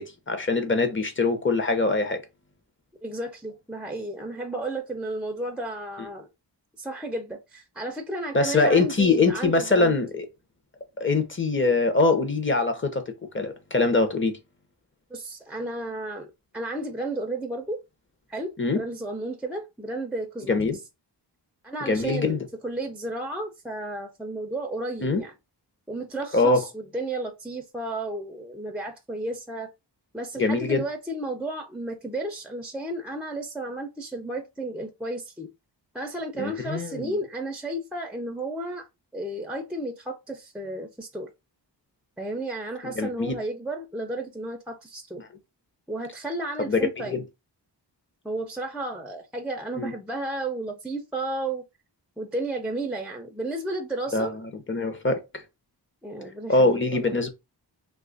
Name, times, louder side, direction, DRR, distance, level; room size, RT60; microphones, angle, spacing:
voice 1, 0.0-2.2 8.3-10.3 11.0-14.3 18.6-18.8 20.5-20.8 21.9-22.4 25.0-25.2 26.3-26.6 30.4-30.8 36.4-37.1 42.8-43.3 46.6-46.8 47.0-47.2 49.8-49.9 54.1-54.3 54.7-55.4 56.5-57.3, left 3 dB, 30° left, 0.7 m, -23 dB
voice 2, 3.0-6.3 6.8-10.0 15.1-17.8 18.3-20.9 21.6-25.4 25.9-29.7 30.1-35.5 35.9-38.9 39.1-41.3 42.2-45.2 45.9-47.2 48.2-51.6 52.2-54.3 56.0-57.2, right 2 dB, 5° right, 0.4 m, -33 dB
2.8 x 2.4 x 3.8 m
wide cardioid pair, 105°, 43 cm